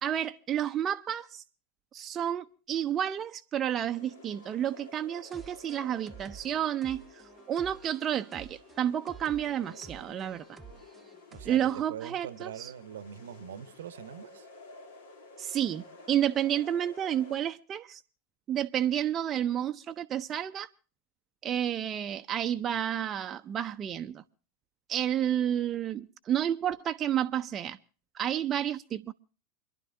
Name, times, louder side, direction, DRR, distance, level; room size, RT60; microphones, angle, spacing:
voice 1, 0.0-1.4 1.9-7.0 7.5-10.6 11.4-12.7 15.4-18.0 18.5-20.7 21.4-24.2 24.9-27.8 28.1-29.1, right 10 dB, 30° right, 0.5 m, -30 dB
sound 1, 3.9-17.4, left 3 dB, 70° left, 2.0 m, -52 dB
sound 2, 5.2-11.9, right 5 dB, 15° right, 0.9 m, -51 dB
voice 2, 11.9-14.5, right 9 dB, 70° right, 0.8 m, -42 dB
29.0 x 11.0 x 2.6 m
hypercardioid pair, 90°, 0 cm